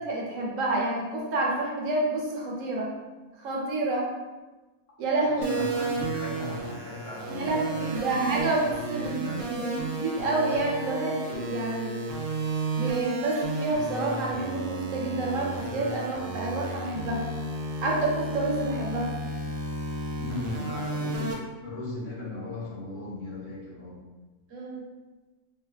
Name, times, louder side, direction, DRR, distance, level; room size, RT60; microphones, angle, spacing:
voice 1, 0.0-2.9 3.4-4.0 5.0-5.6 7.3-11.9 12.7-17.2 17.8-19.1 24.5-24.8, right 2 dB, 65° right, -3 dB, 1.1 m, -28 dB
voice 2, 5.3-9.5 20.2-21.4 21.6-24.0, left 2 dB, 85° left, -7 dB, 1.6 m, -37 dB
sound 1, 5.4-21.3, right 3 dB, 80° right, 0.5 m, -33 dB
4.5 x 2.4 x 2.3 m, 1.2 s
omnidirectional pair, 1.6 m